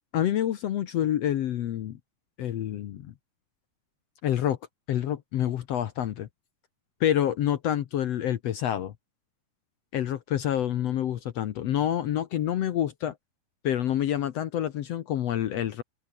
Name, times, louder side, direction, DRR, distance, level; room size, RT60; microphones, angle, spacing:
voice 1, 0.1-2.0 2.4-3.1 4.2-4.6 4.9-6.3 7.0-8.9 9.9-13.1 13.6-15.8, left 11 dB, 70° left, 1.5 m, -27 dB
open air
omnidirectional pair, 4.2 m